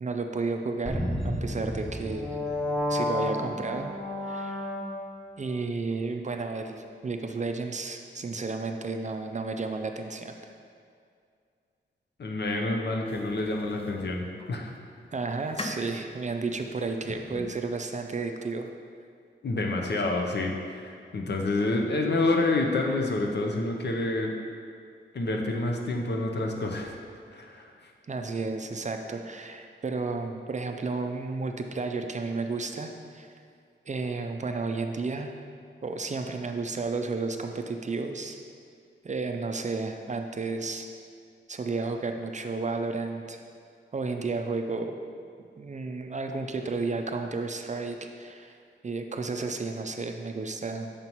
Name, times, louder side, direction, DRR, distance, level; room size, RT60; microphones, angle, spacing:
voice 1, 0.0-2.3 2.9-4.7 5.4-10.4 15.1-18.7 28.1-33.3 33.9-35.3 35.8-38.4 39.0-40.9 41.5-43.4 43.9-45.0 45.6-48.6 48.8-50.9, right 3 dB, 40° right, 5 dB, 0.4 m, -32 dB
sound 1, 0.9-5.3, left 1 dB, 5° left, 1.0 m, -31 dB
voice 2, 12.2-14.7 19.4-24.3 25.1-26.9 27.3-27.7, left 2 dB, 60° left, 1 dB, 0.7 m, -28 dB
sound 2, 13.0-14.5 15.0-17.8, left 2 dB, 30° left, 0.4 m, -42 dB
6.6 x 5.4 x 3.0 m, 2.3 s
wide cardioid pair, 115°, 20 cm